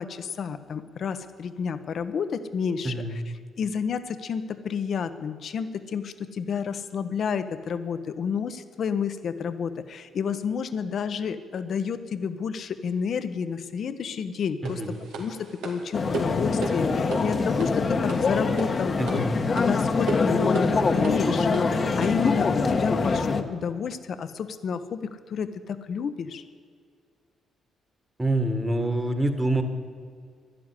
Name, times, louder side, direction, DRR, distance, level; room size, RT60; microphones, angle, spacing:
voice 1, 0.0-3.2 3.6-15.4 15.6-19.2 19.5-25.0 25.3-26.4, left 6 dB, 60° left, 11 dB, 1.0 m, -30 dB
voice 2, 14.6-15.0 19.0-19.3 28.2-29.6, right 1 dB, 15° right, 8 dB, 1.7 m, -26 dB
sound 1, 14.7-22.3, right 4 dB, 90° right, 2.4 m, -37 dB
sound 2, 15.9-23.4, left 4 dB, 40° left, 1.2 m, -24 dB
12.5 x 11.0 x 10.0 m, 2.1 s
cardioid pair, 90°, 0 cm